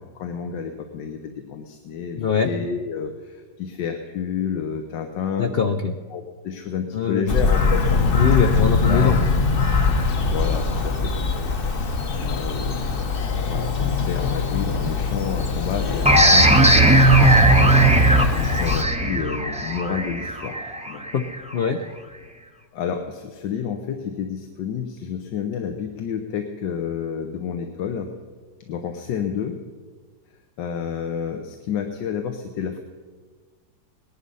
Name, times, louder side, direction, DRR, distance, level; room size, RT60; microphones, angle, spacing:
voice 1, 0.0-5.5 6.1-8.0 8.9-9.1 10.2-11.4 12.1-20.6 20.9-21.0 22.7-28.1 28.7-29.6 30.6-32.8, left 7 dB, 85° left, 5 dB, 1.6 m, -30 dB
voice 2, 2.2-2.5 5.4-5.9 6.9-7.4 8.1-9.3 21.1-21.2 21.5-21.8, left 6 dB, 70° left, 6 dB, 0.5 m, -22 dB
Bird vocalization bird call bird song, 7.3-18.8, left 4 dB, 40° left, 0.8 m, -22 dB
sound 1, 16.0-21.4, right 1 dB, 10° right, 0.4 m, -17 dB
19.0 x 11.0 x 5.5 m, 1.5 s
omnidirectional pair, 1.9 m